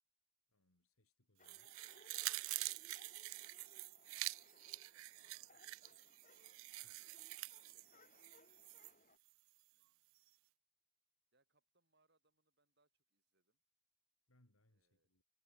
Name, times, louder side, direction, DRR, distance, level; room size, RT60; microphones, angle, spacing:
voice 1, 0.5-1.7 6.8-7.0 14.3-15.2, left 1 dB, 80° left, 4.1 m, -76 dB
sound 1, 1.4-9.2, left 3 dB, 35° left, 4.2 m, -68 dB
sound 2, 1.4-8.9 9.3-9.4, right 20 dB, 70° right, 0.3 m, -47 dB
voice 2, 4.7-6.2 6.8-8.5 9.7-10.4 11.3-13.6 14.7-15.1, right 2 dB, 50° right, 6.2 m, -83 dB
head